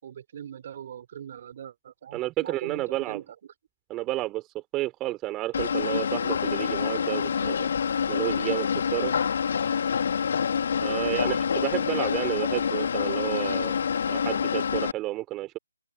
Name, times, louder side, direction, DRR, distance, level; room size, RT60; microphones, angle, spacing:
voice 1, 0.0-3.2 7.0-7.6 9.1-9.2 11.0-11.8, right 9 dB, 40° right, 4.2 m, -42 dB
voice 2, 2.1-3.2 3.9-7.7 8.1-9.1 10.8-13.8 14.1-15.6, right 17 dB, 15° right, 3.6 m, -31 dB
sound 1, 5.5-14.9, left 7 dB, 50° left, 2.8 m, -27 dB
open air
figure-of-eight pair, 150°, 0 cm